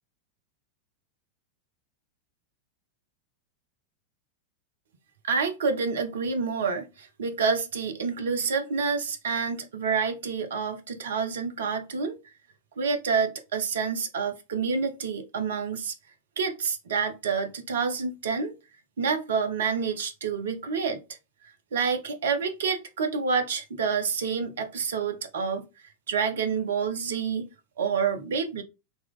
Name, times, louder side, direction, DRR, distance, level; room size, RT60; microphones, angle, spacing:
voice 1, 5.3-12.2 12.8-15.9 16.4-18.5 19.0-21.0 21.7-25.7 26.1-27.5 27.8-28.6, right 5 dB, 65° right, 0.8 m, -28 dB
4.2 x 2.9 x 3.6 m
figure-of-eight pair, 90°, 0 cm